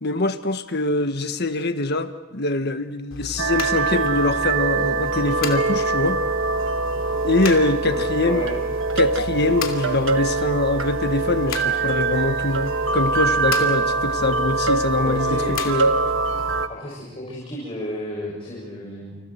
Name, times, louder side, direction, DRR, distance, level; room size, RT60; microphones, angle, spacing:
voice 1, 0.0-6.2 7.2-8.4 9.0-15.9, left 2 dB, 55° left, 8 dB, 1.6 m, -23 dB
sound 1, 3.1-16.6, left 2 dB, 80° left, 2.8 m, -34 dB
sound 2, 3.4-16.7, right 3 dB, 70° right, 1.4 m, -23 dB
voice 2, 7.9-8.6 9.3-9.6 15.0-15.6 16.7-19.2, left 1 dB, 30° left, -4 dB, 7.5 m, -32 dB
30.0 x 28.5 x 4.6 m, 1.2 s
head